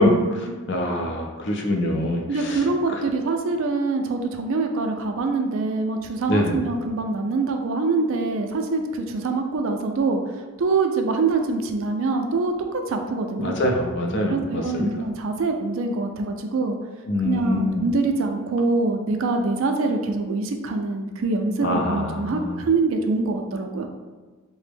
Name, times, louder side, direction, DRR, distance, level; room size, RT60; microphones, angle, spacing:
voice 1, 0.0-0.6 2.3-10.2 10.6-13.5 14.3-16.8 17.2-23.9, right 3 dB, 60° right, 5 dB, 0.3 m, -24 dB
voice 2, 0.7-2.5 6.3-6.6 13.4-14.9 17.1-17.8 21.6-22.5, left 1 dB, 50° left, 1 dB, 0.5 m, -24 dB
3.3 x 2.1 x 3.3 m, 1.3 s
head